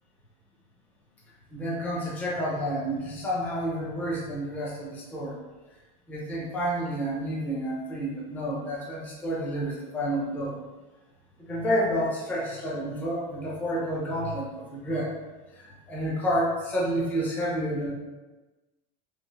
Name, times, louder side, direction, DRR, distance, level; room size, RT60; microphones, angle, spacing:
voice 1, 1.5-5.4 6.1-10.5 11.4-15.1 15.5-17.9, equal, 10° left, -6 dB, 0.4 m, -30 dB
3.1 x 2.4 x 2.4 m, 1.2 s
supercardioid pair, 170°, 19 cm